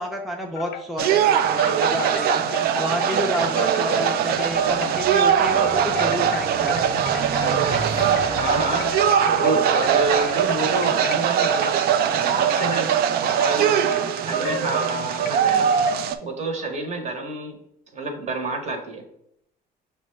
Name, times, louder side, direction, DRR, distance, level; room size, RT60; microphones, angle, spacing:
voice 1, 0.0-2.4 2.8-6.9 16.6-16.7, equal, ahead, 1 dB, 0.5 m, -30 dB
Wind chime, 0.6-1.2 1.6-16.1, left 7 dB, 70° left, 0.5 m, -34 dB
sound 1, 1.0-16.2, right 9 dB, 65° right, 0.4 m, -21 dB
sound 2, 4.5-10.7, right 3 dB, 90° right, 0.7 m, -35 dB
voice 2, 8.4-12.9 13.2-13.9 14.3-15.7 16.2-17.6 17.9-19.0, right 2 dB, 40° right, 4 dB, 0.9 m, -28 dB
6.2 x 2.2 x 3.1 m, 0.76 s
cardioid pair, 110°, 17 cm